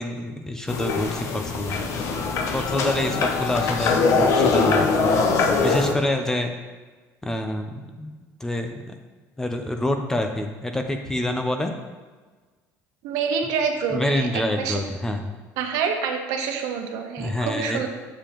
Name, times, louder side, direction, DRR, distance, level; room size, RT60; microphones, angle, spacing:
voice 1, 0.0-1.8 2.5-5.1 5.6-6.5 7.2-8.2 8.4-9.0 9.4-11.7 13.9-15.4 17.2-17.8, left 1 dB, 10° left, 5 dB, 0.5 m, -27 dB
sound 1, 0.7-5.9, left 4 dB, 50° left, 0.7 m, -22 dB
voice 2, 13.0-14.3 14.6-14.8 15.6-17.9, right 6 dB, 75° right, 4 dB, 0.9 m, -26 dB
6.9 x 6.8 x 3.0 m, 1.3 s
cardioid pair, 140°, 6 cm